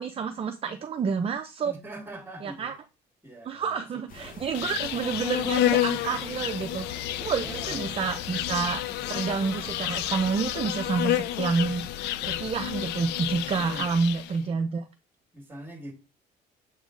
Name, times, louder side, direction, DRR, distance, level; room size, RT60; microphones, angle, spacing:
voice 1, 0.0-1.7 2.4-2.7 3.4-8.8 9.1-11.8 12.2-14.8, right 5 dB, 35° right, 0.6 m, -29 dB
voice 2, 1.6-2.8 3.2-4.4 4.7-4.8 7.4-7.9 13.5-13.9 15.3-15.9, right 1 dB, 10° right, 1.9 m, -43 dB
sound 1, 4.1-10.4, left 4 dB, 55° left, 1.2 m, -46 dB
Insect, 4.5-14.4, left 13 dB, 85° left, 0.5 m, -30 dB
7.2 x 3.6 x 3.8 m
cardioid pair, 110°, 17 cm